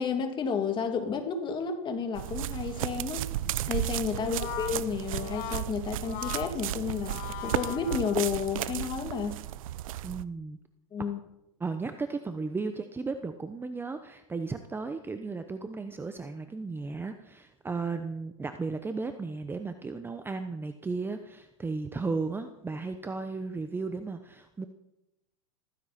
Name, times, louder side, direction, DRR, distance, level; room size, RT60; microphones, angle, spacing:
voice 1, 0.0-3.3 3.7-9.4 10.9-11.2, left 6 dB, 25° left, 5 dB, 2.7 m, -31 dB
sound 1, 2.2-10.2, right 13 dB, 70° right, 0.8 m, -34 dB
Brass instrument, 4.1-8.6, left 14 dB, 50° left, 1.3 m, -40 dB
voice 2, 10.0-10.6 11.6-24.7, right 4 dB, 10° right, 8 dB, 0.9 m, -35 dB
15.5 x 15.0 x 4.3 m, 0.86 s
hypercardioid pair, 115°, 18 cm